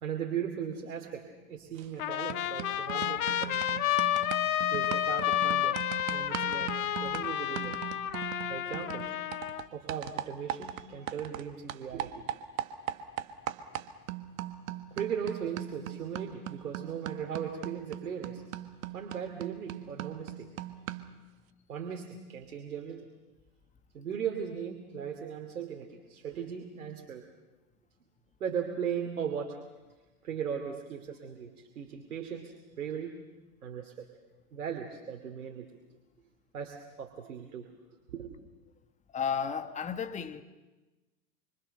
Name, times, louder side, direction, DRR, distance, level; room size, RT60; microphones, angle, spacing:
voice 1, 0.0-3.8 4.7-5.8 6.1-6.7 7.0-7.8 8.5-9.0 9.7-12.3 14.9-20.7 21.7-23.1 23.9-27.2 28.4-29.6 30.2-33.2 33.6-34.1 34.5-35.7 36.5-37.7 38.1-38.4, right 7 dB, 90° right, 2.7 m, -38 dB
sound 1, 1.8-2.0 2.3-11.4 11.7-21.2, right 12 dB, 70° right, 1.6 m, -40 dB
Trumpet, 2.0-9.7, left 12 dB, 75° left, 1.4 m, -30 dB
voice 2, 39.1-40.4, left 7 dB, 15° left, 1.3 m, -33 dB
26.0 x 25.5 x 6.7 m
hypercardioid pair, 115°, 43 cm